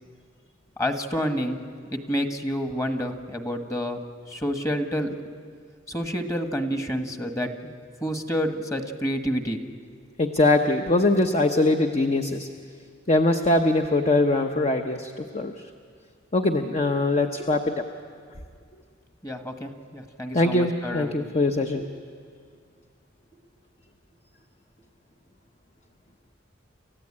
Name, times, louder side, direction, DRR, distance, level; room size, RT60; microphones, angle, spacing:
voice 1, 0.8-1.6 1.9-5.1 5.9-7.7 8.0-9.6 19.2-21.3 21.8-21.9, equal, 15° left, 6 dB, 1.4 m, -29 dB
voice 2, 10.2-12.5 13.1-15.5 16.3-17.7 20.3-21.8, left 2 dB, 35° left, 4 dB, 0.9 m, -22 dB
29.0 x 15.0 x 8.7 m, 2.1 s
head